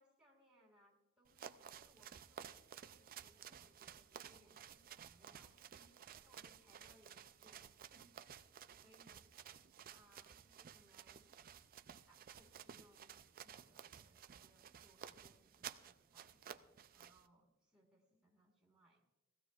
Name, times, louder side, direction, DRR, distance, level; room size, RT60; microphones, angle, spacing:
voice 1, 0.0-8.5 8.8-9.3 9.9-11.4 12.1-19.0, right 1 dB, 5° right, -5 dB, 1.8 m, -71 dB
sound 1, 1.3-17.3, right 8 dB, 40° right, 0.4 m, -55 dB
19.0 x 15.0 x 2.4 m, 1.1 s
head